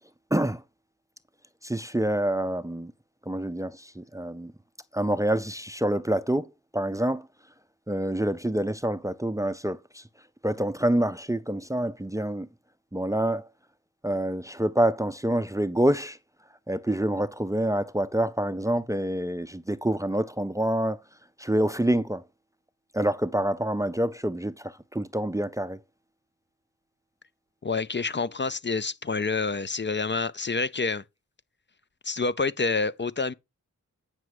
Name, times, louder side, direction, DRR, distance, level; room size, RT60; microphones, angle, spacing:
voice 1, 0.3-0.6 1.6-2.9 3.3-4.5 4.9-7.3 7.9-10.1 10.4-12.5 12.9-13.5 14.0-16.2 16.7-21.0 21.4-22.2 22.9-25.8, right 1 dB, 10° right, 0.6 m, -27 dB
voice 2, 27.6-31.0 32.0-33.3, left 4 dB, 40° left, 0.6 m, -28 dB
9.4 x 6.2 x 4.9 m
wide cardioid pair, 85°, 30 cm